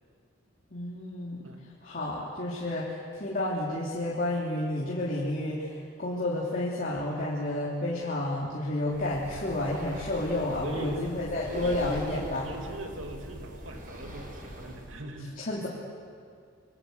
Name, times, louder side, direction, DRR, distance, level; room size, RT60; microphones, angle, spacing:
voice 1, 0.7-1.6 1.8-12.5 15.4-15.7, left 1 dB, 45° left, -5 dB, 3.6 m, -31 dB
Breathing, 8.9-15.0, equal, 45° right, 4.5 m, -42 dB
voice 2, 10.6-15.4, right 1 dB, 75° right, 3 dB, 3.0 m, -41 dB
28.0 x 23.5 x 8.3 m, 2.3 s
head